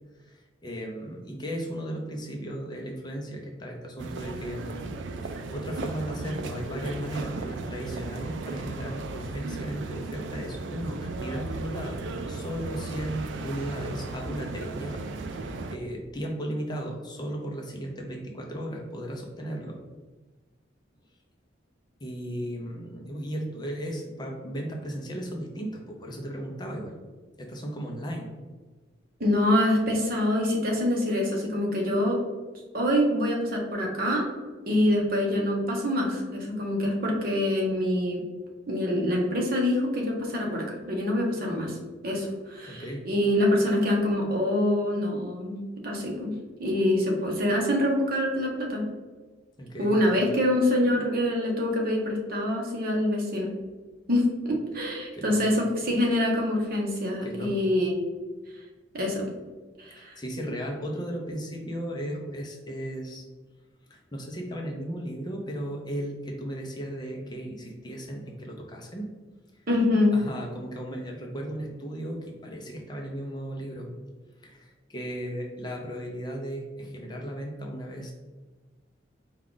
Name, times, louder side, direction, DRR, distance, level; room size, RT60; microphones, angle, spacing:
voice 1, 0.3-4.9 5.2-15.0 15.3-19.8 22.0-27.0 27.4-28.4 42.7-43.1 49.6-50.3 55.1-55.4 57.2-57.5 59.9-63.2 63.9-69.1 70.1-73.9 74.4-78.1, equal, 25° left, 0 dB, 0.6 m, -36 dB
sound 1, 4.0-15.8, right 3 dB, 75° right, 0.4 m, -36 dB
voice 2, 29.2-32.2 32.7-34.3 34.7-38.2 38.7-41.8 42.0-46.3 46.6-48.9 49.8-53.5 54.1-57.9 58.9-59.3 59.8-60.2 69.7-70.2, left 1 dB, 50° right, -1 dB, 0.9 m, -25 dB
4.6 x 2.4 x 3.8 m, 1.3 s
head